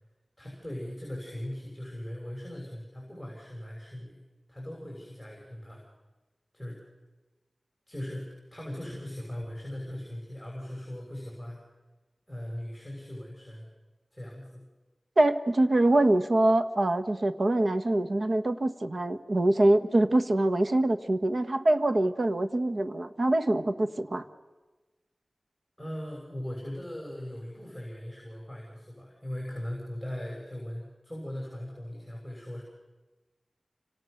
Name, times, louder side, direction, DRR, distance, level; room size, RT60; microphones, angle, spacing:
voice 1, 0.4-4.2 4.5-5.8 6.5-6.8 7.9-11.6 12.3-13.7 14.1-14.6 25.8-32.6, left 1 dB, ahead, -2 dB, 6.5 m, -39 dB
voice 2, 15.2-24.2, right 1 dB, 60° right, 8 dB, 1.4 m, -24 dB
29.5 x 26.0 x 6.7 m, 1.2 s
wide cardioid pair, 70°, 0 cm